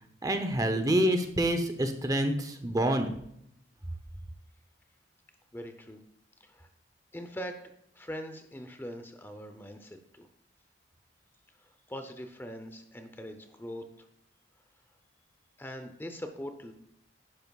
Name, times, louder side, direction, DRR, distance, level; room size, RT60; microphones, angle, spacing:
voice 1, 0.2-3.1, right 1 dB, 20° right, 6 dB, 0.8 m, -27 dB
voice 2, 5.5-6.0 6.4-6.7 7.1-7.6 7.9-10.3 11.6-14.1 15.6-16.7, equal, 10° left, 7 dB, 0.7 m, -42 dB
11.0 x 10.5 x 2.4 m, 0.74 s
head